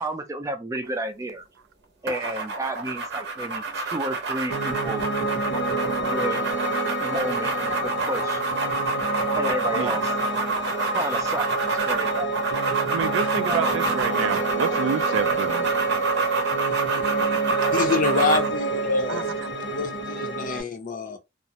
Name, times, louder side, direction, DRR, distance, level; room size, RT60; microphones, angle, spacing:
voice 1, 0.0-1.4 2.0-5.3 5.8-6.5 7.0-8.4 9.3-10.0 10.9-12.3 13.4-13.8 19.3-19.4, right 1 dB, 15° right, 0.4 m, -31 dB
sound 1, 2.1-18.6, right 4 dB, 60° right, 0.7 m, -28 dB
Piano, 4.5-20.6, right 2 dB, 80° left, 0.9 m, -27 dB
voice 2, 12.9-15.7 19.1-19.5, right 7 dB, 85° right, 0.3 m, -29 dB
voice 3, 17.7-19.4 19.7-21.2, left 4 dB, 45° left, 0.5 m, -26 dB
2.4 x 2.0 x 2.8 m
head